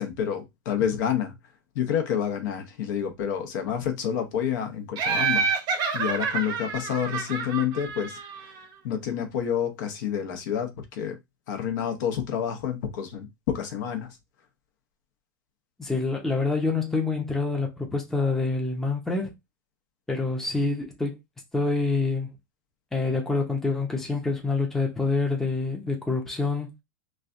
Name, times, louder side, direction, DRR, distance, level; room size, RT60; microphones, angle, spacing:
voice 1, 0.0-1.3 1.7-5.5 5.9-8.2 8.8-11.2 11.5-14.1, left 8 dB, 60° left, 0.9 m, -28 dB
Laughter, 5.0-8.6, right 5 dB, 40° right, 0.7 m, -28 dB
voice 2, 15.8-19.3 20.1-21.2 21.5-22.4 22.9-26.7, left 3 dB, 5° left, 0.7 m, -26 dB
3.2 x 2.3 x 2.5 m
supercardioid pair, 130°, 11 cm